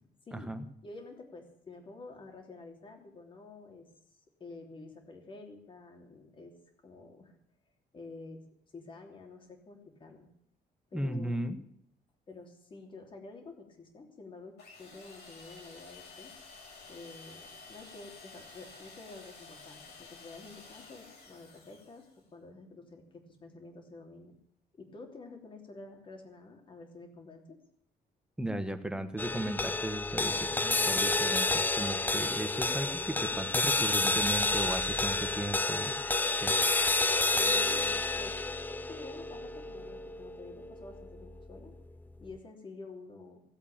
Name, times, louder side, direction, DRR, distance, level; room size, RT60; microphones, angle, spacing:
voice 1, 0.3-0.7 10.9-11.6 28.4-36.0 36.4-36.5, right 1 dB, 5° right, 8 dB, 1.2 m, -36 dB
voice 2, 0.8-3.9 4.4-6.5 6.8-7.3 7.9-8.4 8.7-10.3 10.9-11.4 12.3-16.3 16.9-22.1 22.3-24.4 24.8-27.6 37.3-41.7 42.2-43.4, left 3 dB, 30° left, 3 dB, 3.1 m, -49 dB
sound 1, 14.6-22.2, left 4 dB, 85° left, 6.8 m, -52 dB
sound 2, 29.2-41.7, left 3 dB, 10° left, 0.5 m, -30 dB
17.5 x 8.3 x 8.7 m, 0.72 s
cardioid pair, 175°, 17 cm